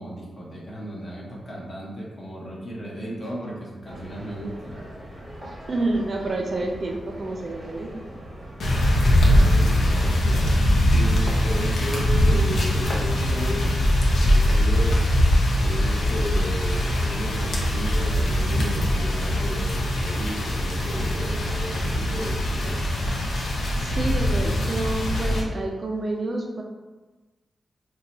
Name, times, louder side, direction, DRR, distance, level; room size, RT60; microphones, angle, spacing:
voice 1, 0.0-4.7 9.1-13.7 14.1-15.0 15.6-22.8, equal, 30° left, -4 dB, 0.8 m, -34 dB
sound 1, 3.9-10.4, equal, 25° right, 0.8 m, -40 dB
voice 2, 5.7-7.9 23.8-26.6, right 2 dB, 40° right, 1 dB, 0.3 m, -28 dB
sound 2, 8.6-25.4, left 1 dB, 70° left, 0.6 m, -22 dB
2.7 x 2.2 x 3.9 m, 1.2 s
wide cardioid pair, 145°, 0 cm